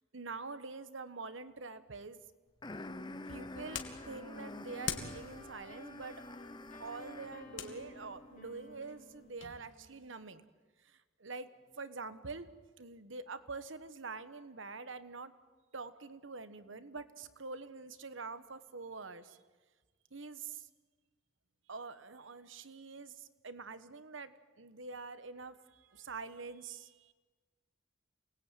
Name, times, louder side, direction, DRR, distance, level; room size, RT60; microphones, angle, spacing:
voice 1, 0.1-2.2 3.1-6.4 6.8-10.4 10.8-12.5 12.8-15.3 15.7-19.4 20.1-20.7 21.7-27.1, right 4 dB, 75° right, 12 dB, 1.4 m, -46 dB
sound 1, 2.6-7.5, left 2 dB, 20° left, 0.9 m, -47 dB
sound 2, 2.8-9.6, left 7 dB, 70° left, 2.5 m, -47 dB
sound 3, 3.5-10.3, left 1 dB, 40° left, 2.4 m, -55 dB
28.5 x 20.0 x 9.2 m, 1.4 s
head